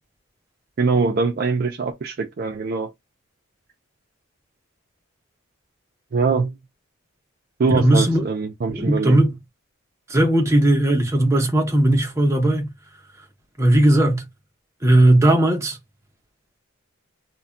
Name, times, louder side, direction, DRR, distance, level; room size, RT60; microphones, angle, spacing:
voice 1, 0.8-2.9 6.1-6.5 7.6-9.2, right 4 dB, 50° right, 0.4 m, -22 dB
voice 2, 7.7-8.2 8.7-9.4 10.1-12.7 13.6-14.3 14.8-15.8, right 1 dB, 15° right, 0.7 m, -17 dB
2.2 x 2.1 x 3.6 m
head